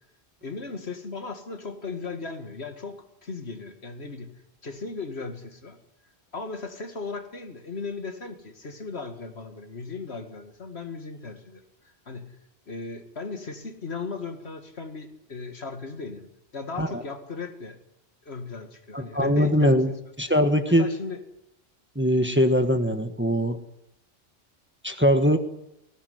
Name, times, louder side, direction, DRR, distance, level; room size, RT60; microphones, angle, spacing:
voice 1, 0.4-4.3 4.6-5.8 6.3-12.4 12.7-16.3 16.5-17.8 18.2-19.8 20.7-21.2, left 4 dB, 70° left, 7 dB, 2.4 m, -37 dB
voice 2, 18.9-19.9 20.2-20.9 21.9-23.6 24.8-25.4, equal, 10° right, 7 dB, 1.5 m, -21 dB
19.5 x 16.5 x 9.5 m, 0.81 s
omnidirectional pair, 1.1 m